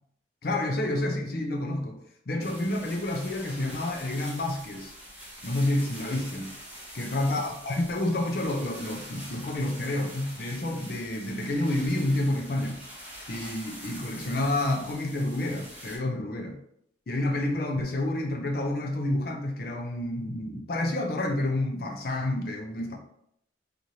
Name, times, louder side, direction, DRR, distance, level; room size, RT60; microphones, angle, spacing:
voice 1, 0.4-2.0 2.3-4.9 5.4-6.5 6.9-12.8 13.3-16.6 17.1-23.0, left 1 dB, 55° left, 3 dB, 0.5 m, -29 dB
sound 1, 2.4-16.0, equal, 5° right, 0.8 m, -44 dB
3.0 x 2.5 x 2.7 m, 0.72 s
head